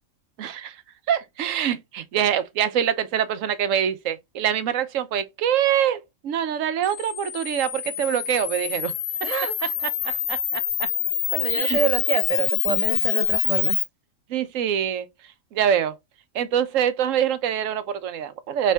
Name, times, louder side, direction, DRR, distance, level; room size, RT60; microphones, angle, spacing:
voice 1, 0.4-0.8 1.1-8.9 10.3-10.9 11.5-11.8 14.3-15.1 15.5-16.0 16.3-18.7, right 9 dB, 75° right, 1.1 m, -24 dB
Camera, 6.8-13.8, left 10 dB, 85° left, 1.1 m, -26 dB
voice 2, 9.2-9.7 11.3-13.8, right 5 dB, 35° right, 0.7 m, -27 dB
4.2 x 3.6 x 3.4 m
omnidirectional pair, 1.4 m